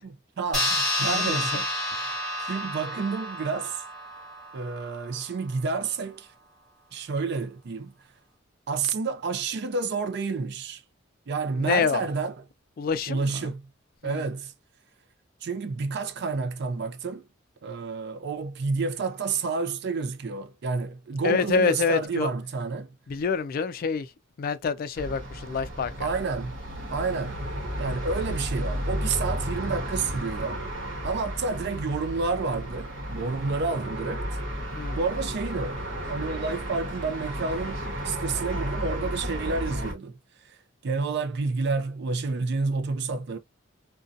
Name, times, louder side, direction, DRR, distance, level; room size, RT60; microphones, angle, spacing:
voice 1, 0.0-1.7 2.4-3.8 4.5-6.3 6.9-7.9 8.7-10.8 11.3-12.3 13.1-13.6 14.0-14.5 15.4-17.3 17.6-22.9 26.0-26.6 26.9-27.5 27.8-30.6 31.0-34.3 34.9-40.2 40.4-40.6 40.8-43.4, right 4 dB, 55° right, 0.4 m, -30 dB
sound 1, 0.5-5.4, left 1 dB, 5° left, 1.1 m, -30 dB
voice 2, 1.1-1.6 1.9-2.2 11.6-12.1 12.8-13.5 14.0-14.2 21.2-22.3 23.1-24.1 24.4-26.1 34.7-35.0, left 5 dB, 45° left, 0.3 m, -27 dB
sound 2, 24.9-39.9, equal, 75° right, 1.1 m, -33 dB
2.6 x 2.2 x 2.4 m
head